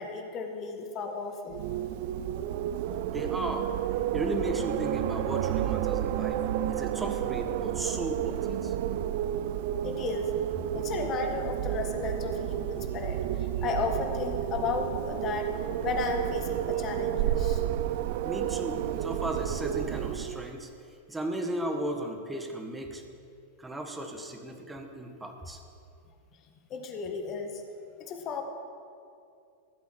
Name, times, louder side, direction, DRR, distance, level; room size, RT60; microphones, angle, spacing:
voice 1, 0.0-1.6 9.8-10.4 10.7-15.5 15.8-17.6 26.7-27.6 28.0-28.4, left 4 dB, 35° left, 4 dB, 1.7 m, -34 dB
Wind, 1.5-20.5, right 11 dB, 50° right, 0.4 m, -31 dB
voice 2, 3.1-3.7 4.1-6.4 6.7-8.7 18.2-23.0 23.6-25.6, right 1 dB, 10° right, 4 dB, 1.6 m, -35 dB
15.0 x 7.9 x 6.5 m, 2.4 s
figure-of-eight pair, 90°, 0 cm